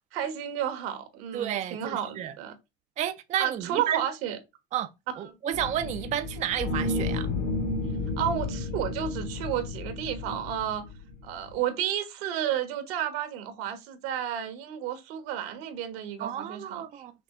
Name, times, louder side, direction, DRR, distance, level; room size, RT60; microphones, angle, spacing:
voice 1, 0.1-2.5 3.4-4.4 5.2-5.3 8.2-10.8 11.2-17.0, right 10 dB, 80° right, 1.3 m, -32 dB
voice 2, 1.3-2.3 3.0-4.0 4.7-4.9 5.2-7.3 16.2-17.1, right 10 dB, 25° right, 0.4 m, -31 dB
sound 1, 5.5-11.5, left 3 dB, 75° left, 1.7 m, -32 dB
5.9 x 2.3 x 3.7 m
supercardioid pair, 120°, 31 cm